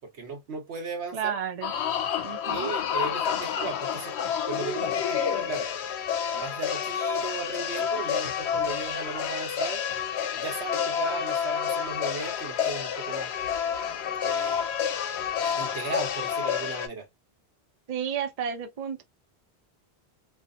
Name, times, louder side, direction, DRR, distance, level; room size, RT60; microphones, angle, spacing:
voice 1, 0.2-1.4 2.5-4.1 4.5-5.7 6.3-9.8 10.4-13.3 14.2-14.6 15.6-17.1, right 4 dB, 85° right, 1.2 m, -36 dB
voice 2, 1.1-1.7 2.2-2.7 17.9-19.0, right 8 dB, 45° right, 0.6 m, -32 dB
sound 1, 1.6-16.9, left 8 dB, 90° left, 0.9 m, -29 dB
2.7 x 2.5 x 2.5 m
omnidirectional pair, 1.1 m